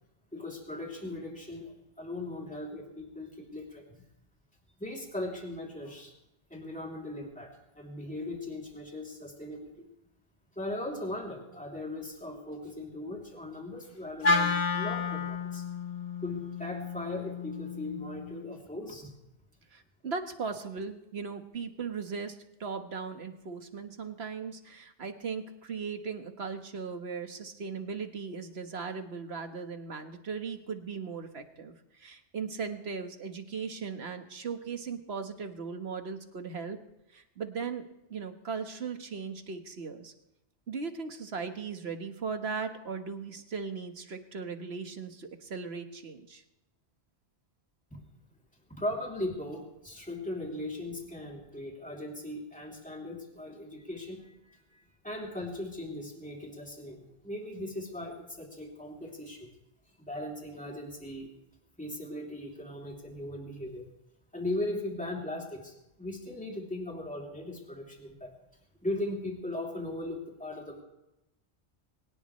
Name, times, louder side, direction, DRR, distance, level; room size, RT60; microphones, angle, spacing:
voice 1, 0.3-4.0 4.8-6.1 6.5-9.9 10.5-15.7 16.2-19.1 47.9-48.0 48.7-59.5 60.0-61.3 61.8-63.9 64.3-68.3 68.8-70.8, left 1 dB, 5° left, -1 dB, 2.9 m, -38 dB
Wind instrument woodwind instrument, 14.2-18.5, left 4 dB, 60° left, 1.4 m, -31 dB
voice 2, 19.7-36.8 37.1-40.1 40.7-46.4, right 5 dB, 65° right, 6 dB, 1.7 m, -38 dB
22.5 x 19.0 x 3.2 m, 0.90 s
omnidirectional pair, 1.2 m